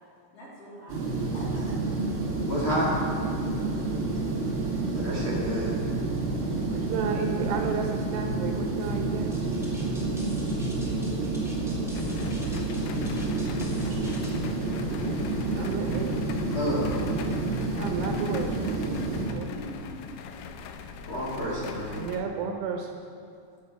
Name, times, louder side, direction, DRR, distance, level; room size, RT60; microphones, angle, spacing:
voice 1, 0.3-1.0 1.3-1.8 3.5-4.2 14.8-15.1 19.2-20.0, left 1 dB, 35° left, -6 dB, 3.6 m, -45 dB
sound 1, 0.9-19.3, right 2 dB, 35° right, 2.1 m, -29 dB
voice 2, 2.5-2.9 4.9-5.7 16.5-17.0 21.1-22.0, equal, 55° left, -5 dB, 1.5 m, -29 dB
voice 3, 6.7-9.6 13.9-14.1 15.5-16.2 17.8-18.6 19.2-19.6 22.0-23.0, right 6 dB, 75° right, 3 dB, 3.3 m, -33 dB
sound 2, 9.3-14.4, equal, ahead, 1.4 m, -47 dB
sound 3, 11.9-22.2, left 6 dB, 80° left, 3.4 m, -41 dB
11.0 x 10.0 x 8.9 m, 2.4 s
omnidirectional pair, 6.0 m